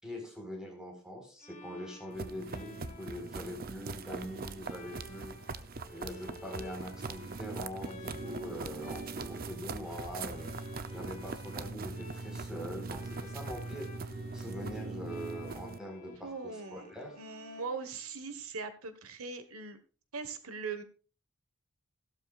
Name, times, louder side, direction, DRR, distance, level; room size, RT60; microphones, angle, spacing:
voice 1, 0.0-5.4 5.9-10.5 10.9-13.9 14.3-17.2, equal, 5° right, 1 dB, 4.3 m, -43 dB
Bowed string instrument, 1.4-18.3, left 3 dB, 35° left, 2.0 m, -54 dB
sound 1, 2.1-15.8, right 3 dB, 45° right, 0.7 m, -41 dB
voice 2, 16.1-16.9 17.2-19.8 20.1-20.8, right 4 dB, 85° right, 10 dB, 1.4 m, -40 dB
15.5 x 12.5 x 2.4 m, 0.35 s
head